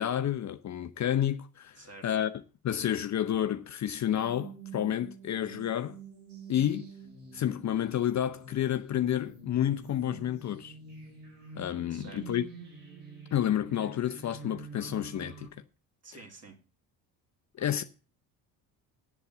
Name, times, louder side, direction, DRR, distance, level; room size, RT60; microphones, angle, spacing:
voice 1, 0.0-2.3 2.6-6.0 6.5-6.9 7.3-10.7 11.6-12.4 13.3-15.5 17.6-17.8, left 10 dB, 40° left, 0.7 m, -30 dB
voice 2, 1.8-2.1 11.9-12.3 16.0-16.6, right 2 dB, 30° right, 3.3 m, -49 dB
sound 1, 4.2-15.5, right 4 dB, 85° right, 5.2 m, -47 dB
8.0 x 7.3 x 8.0 m
hypercardioid pair, 60°, 46 cm